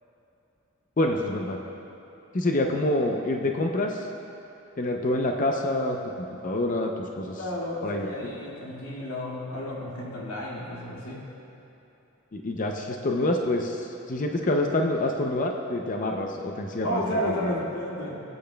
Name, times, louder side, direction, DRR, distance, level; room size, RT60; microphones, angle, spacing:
voice 1, 1.0-1.6 2.3-4.1 4.8-7.4 7.8-8.3 12.3-17.6, left 1 dB, 40° left, 2 dB, 0.6 m, -27 dB
voice 2, 7.4-11.2 16.8-18.2, equal, 80° left, -5 dB, 2.1 m, -32 dB
20.5 x 8.8 x 2.3 m, 2.9 s
head